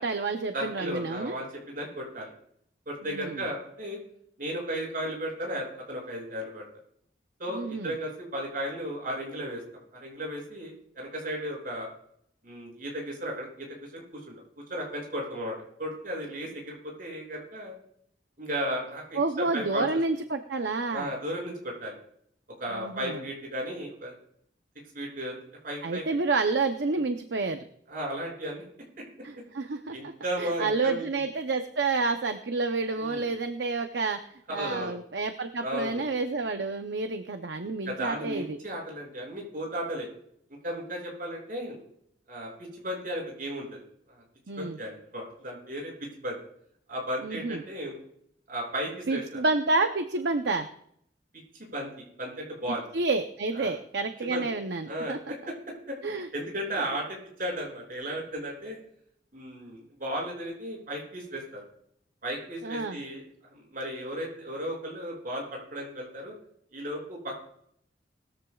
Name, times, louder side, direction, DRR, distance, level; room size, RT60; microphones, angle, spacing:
voice 1, 0.0-1.3 3.1-3.4 7.5-7.9 19.2-21.1 22.7-23.2 25.8-27.7 29.2-34.2 34.5-38.6 44.5-44.8 47.2-47.6 49.1-50.7 52.7-55.2 56.0-56.3 62.6-63.0, right 3 dB, 70° right, 7 dB, 0.7 m, -29 dB
voice 2, 0.5-2.3 2.8-4.0 4.4-6.6 7.4-9.6 9.9-11.9 12.4-14.3 14.7-17.7 18.4-19.9 20.9-21.9 22.6-24.1 24.9-25.4 25.6-26.2 26.9-27.0 27.9-28.6 29.9-31.0 33.0-33.2 34.5-35.0 35.6-36.0 37.8-40.1 40.6-41.8 42.3-43.8 44.1-44.2 44.6-45.9 46.2-46.4 46.9-48.0 48.5-49.4 51.6-52.8 53.5-53.7 54.3-54.4 54.9-55.5 55.9-56.0 56.3-58.8 59.3-61.6 62.2-63.2 63.5-66.3 66.7-67.4, equal, 50° right, -1 dB, 6.6 m, -35 dB
20.5 x 14.0 x 2.4 m, 0.69 s
head